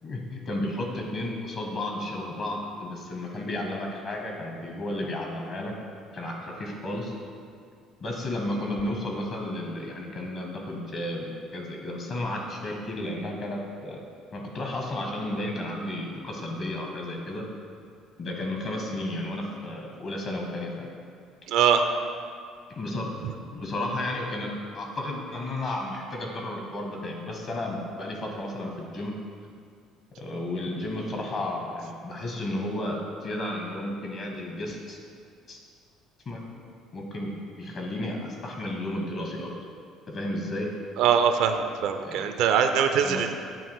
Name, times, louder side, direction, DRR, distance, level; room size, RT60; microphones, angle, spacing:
voice 1, 0.0-5.8 6.1-7.1 8.0-11.2 11.5-14.0 14.3-17.5 18.2-20.9 22.7-23.1 23.5-29.2 30.2-35.0 35.5-35.6 36.2-36.4 36.9-39.5 40.1-40.7 42.0-42.4 43.0-43.4, left 1 dB, 45° left, 1 dB, 1.2 m, -33 dB
voice 2, 21.5-21.8 23.2-23.3 41.0-43.4, right 7 dB, 60° right, 6 dB, 0.4 m, -22 dB
8.7 x 2.9 x 4.5 m, 2.2 s
figure-of-eight pair, 55°, 0 cm